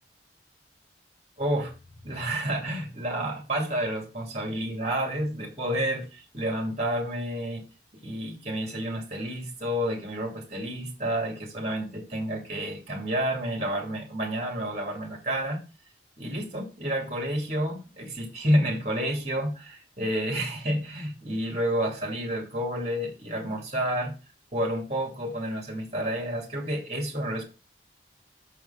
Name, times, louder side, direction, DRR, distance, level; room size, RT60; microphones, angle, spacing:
voice 1, 1.4-1.7 2.0-7.6 8.0-15.6 16.2-24.1 24.5-27.4, right 1 dB, 35° right, 1 dB, 2.3 m, -30 dB
6.5 x 4.6 x 5.6 m, 0.32 s
head